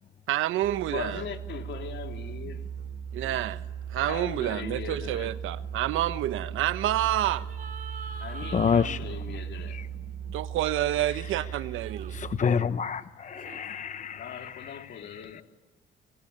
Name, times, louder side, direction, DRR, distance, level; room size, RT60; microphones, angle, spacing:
voice 1, 0.3-1.2 3.1-3.6 3.9-7.5 10.3-12.1, right 13 dB, 90° right, 1.2 m, -28 dB
Musical instrument, 0.6-12.6, right 8 dB, 60° right, 2.8 m, -38 dB
voice 2, 0.9-2.6 4.1-5.3 8.2-9.8 14.1-15.4, left 7 dB, 65° left, 3.3 m, -39 dB
sound 1, 3.2-3.5 7.0-9.0 11.8-12.1 13.4-13.6, right 4 dB, 45° right, 2.9 m, -43 dB
voice 3, 8.5-9.0 9.7-9.9 11.1-11.2 12.1-15.4, left 6 dB, 40° left, 0.8 m, -29 dB
27.5 x 21.0 x 8.8 m
cardioid pair, 90°, 20 cm